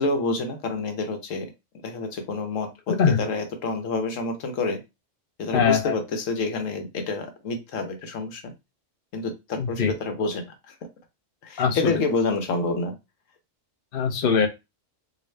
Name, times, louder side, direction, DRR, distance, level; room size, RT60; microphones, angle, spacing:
voice 1, 0.0-1.5 1.8-4.8 5.4-8.5 9.1-10.7 11.4-13.0, left 3 dB, 80° left, 6 dB, 1.2 m, -28 dB
voice 2, 5.5-5.9 9.6-9.9 11.6-11.9 13.9-14.5, left 6 dB, 50° left, 6 dB, 0.8 m, -21 dB
3.8 x 2.5 x 3.2 m, 0.24 s
omnidirectional pair, 1.3 m